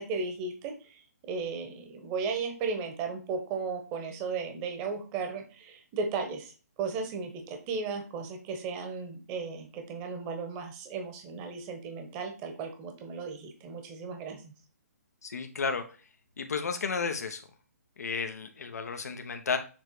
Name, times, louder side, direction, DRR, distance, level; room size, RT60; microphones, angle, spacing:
voice 1, 0.0-14.5, right 4 dB, 25° right, 5 dB, 1.3 m, -35 dB
voice 2, 15.2-15.8 16.4-17.4 18.0-19.6, left 5 dB, 75° left, 6 dB, 1.0 m, -32 dB
7.3 x 3.2 x 4.8 m, 0.36 s
hypercardioid pair, 145°, 9 cm